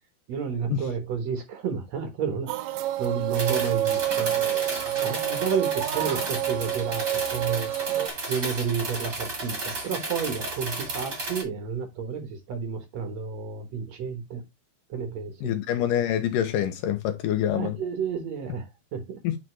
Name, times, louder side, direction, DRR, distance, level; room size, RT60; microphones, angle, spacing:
voice 1, 0.3-2.5 3.0-7.7 8.2-14.4 14.9-15.6 17.5-19.2, right 6 dB, 65° right, 1.7 m, -31 dB
sound 1, 2.5-8.1, right 13 dB, 85° right, 2.8 m, -28 dB
sound 2, 3.3-11.4, right 2 dB, 30° right, 1.5 m, -33 dB
voice 2, 15.4-17.7 19.2-19.4, left 10 dB, 75° left, 2.0 m, -26 dB
9.4 x 4.0 x 3.1 m
omnidirectional pair, 4.7 m